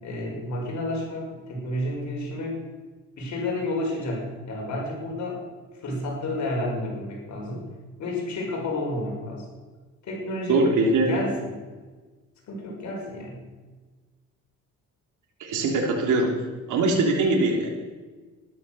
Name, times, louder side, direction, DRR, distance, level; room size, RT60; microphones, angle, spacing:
voice 1, 0.0-2.6 3.2-5.4 5.8-7.7 8.0-9.4 10.0-10.7 11.0-11.5 12.5-13.4, left 1 dB, 65° left, -1 dB, 6.0 m, -30 dB
voice 2, 10.5-11.2 15.4-16.3 16.7-17.8, right 2 dB, 80° right, 0 dB, 3.2 m, -22 dB
13.5 x 12.0 x 6.9 m, 1.3 s
cardioid pair, 90°, 30 cm